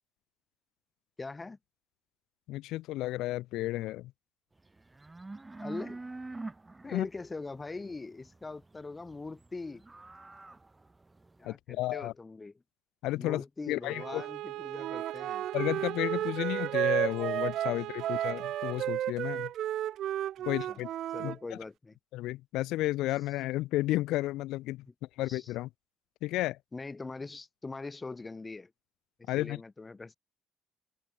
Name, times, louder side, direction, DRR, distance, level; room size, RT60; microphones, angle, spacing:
voice 1, 1.2-1.6 5.6-6.0 6.8-9.8 11.4-12.5 13.2-15.4 20.4-20.8 21.1-22.0 25.2-25.5 26.7-28.7 29.2-30.1, left 3 dB, 15° left, 1.1 m, -42 dB
voice 2, 2.5-4.1 6.9-7.1 11.4-12.1 13.0-14.2 15.5-19.5 20.4-20.9 21.2-21.6 22.1-24.8 25.2-25.7 26.2-26.6 29.3-29.6, left 17 dB, 75° left, 1.1 m, -32 dB
sound 1, 4.7-11.4, right 2 dB, 10° right, 1.6 m, -46 dB
Bowed string instrument, 13.8-19.0, right 16 dB, 75° right, 5.3 m, -41 dB
Wind instrument woodwind instrument, 14.8-21.4, right 12 dB, 55° right, 1.0 m, -32 dB
open air
cardioid pair, 145°, 0 cm